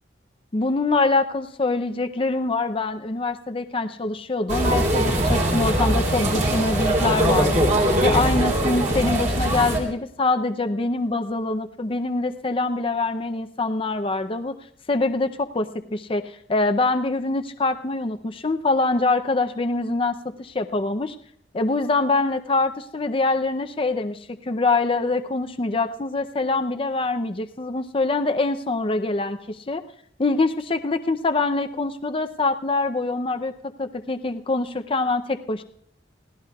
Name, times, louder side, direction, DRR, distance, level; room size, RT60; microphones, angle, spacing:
voice 1, 0.5-14.5 14.9-21.2 21.5-29.8 30.2-33.5 33.8-35.6, left 3 dB, 30° left, 7 dB, 0.5 m, -24 dB
sound 1, 4.5-9.8, right 1 dB, 45° right, 3.3 m, -21 dB
28.5 x 16.5 x 2.3 m, 0.67 s
head